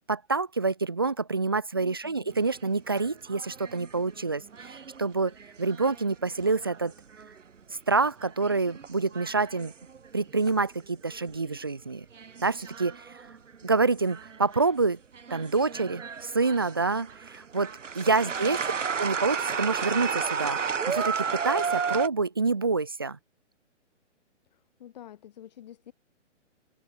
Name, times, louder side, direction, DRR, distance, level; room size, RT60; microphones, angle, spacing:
voice 1, 0.1-6.9 7.9-9.7 10.1-12.1 12.4-13.1 13.6-15.0 15.3-18.6 19.0-20.6 20.9-23.2, right 3 dB, 20° right, 0.5 m, -27 dB
voice 2, 1.7-2.3 18.3-18.6 24.5-25.9, left 11 dB, 35° left, 4.9 m, -49 dB
sound 1, 2.3-7.6 8.0-10.8 11.1-11.6 12.1-14.8 15.1-22.1, right 6 dB, 75° right, 6.1 m, -34 dB
hypercardioid pair, 170°, 37 cm